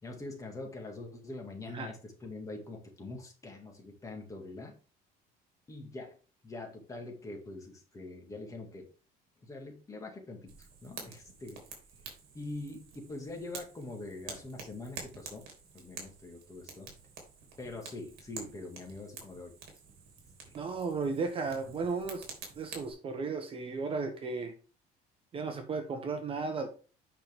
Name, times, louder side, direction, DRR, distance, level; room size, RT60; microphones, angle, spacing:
voice 1, 0.0-4.7 5.7-6.2 6.4-8.9 9.4-11.6 12.3-15.5 15.7-16.9 17.6-19.5 20.5-20.7 21.6-21.8, left 2 dB, 20° left, 2 dB, 2.0 m, -44 dB
Fire, 10.5-22.9, right 5 dB, 60° right, 3.2 m, -49 dB
voice 2, 20.5-22.2 22.6-24.5 25.3-26.7, right 4 dB, 30° right, 6 dB, 1.2 m, -34 dB
8.6 x 5.8 x 3.6 m, 0.37 s
cardioid pair, 150°, 18 cm